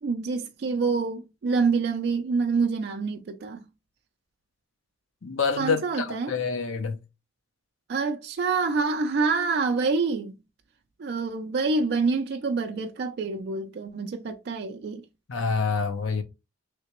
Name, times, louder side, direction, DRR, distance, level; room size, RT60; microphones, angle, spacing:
voice 1, 0.0-3.6 5.6-6.3 7.9-10.4 11.0-15.0, right 4 dB, 55° right, 0.3 m, -26 dB
voice 2, 5.2-7.0 15.3-16.2, left 5 dB, 80° left, 0.6 m, -27 dB
3.3 x 2.8 x 2.9 m
head